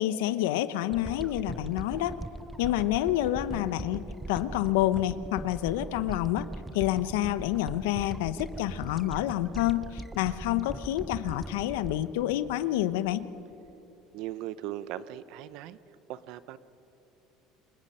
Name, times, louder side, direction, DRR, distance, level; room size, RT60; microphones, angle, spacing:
voice 1, 0.0-2.2 2.6-6.5 6.7-13.3, left 14 dB, 90° left, 14 dB, 0.8 m, -28 dB
sound 1, 0.9-13.2 13.7-13.8, right 2 dB, 10° right, 0.5 m, -41 dB
voice 2, 14.1-15.8 16.1-16.6, right 13 dB, 70° right, 15 dB, 0.7 m, -38 dB
27.0 x 19.5 x 5.6 m, 2.9 s
supercardioid pair, 110°, 0 cm